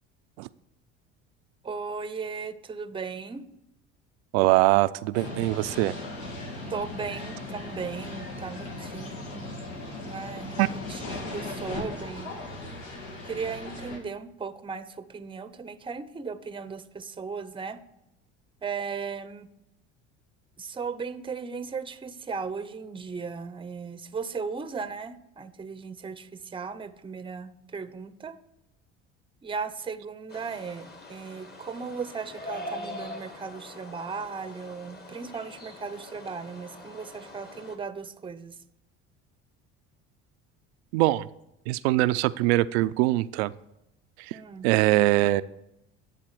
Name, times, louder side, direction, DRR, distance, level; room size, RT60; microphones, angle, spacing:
voice 1, 1.6-3.4 6.7-9.6 10.0-10.6 10.9-12.3 13.2-17.8 18.6-19.5 20.6-28.4 29.4-38.6 44.3-44.7, right 5 dB, 15° right, 13 dB, 0.6 m, -36 dB
voice 2, 4.3-5.9 10.6-10.7 40.9-41.3 41.7-43.5 44.3-44.4 44.6-45.4, right 18 dB, 80° right, 16 dB, 0.5 m, -22 dB
sound 1, 5.1-14.0, left 2 dB, 90° left, 1.7 m, -38 dB
sound 2, 30.3-37.8, left 1 dB, 30° left, 1.6 m, -43 dB
11.5 x 3.9 x 6.5 m, 0.86 s
supercardioid pair, 85°, 31 cm